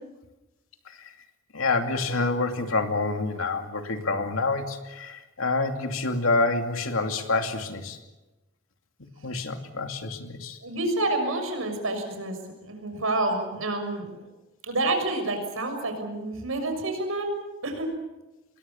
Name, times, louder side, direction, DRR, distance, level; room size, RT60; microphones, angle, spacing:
voice 1, 1.5-8.0 9.2-10.6, left 3 dB, 80° left, 5 dB, 2.6 m, -27 dB
voice 2, 10.6-14.3 14.6-17.3 17.6-17.9, right 2 dB, 80° right, 6 dB, 6.4 m, -28 dB
27.0 x 22.0 x 7.2 m, 1.0 s
head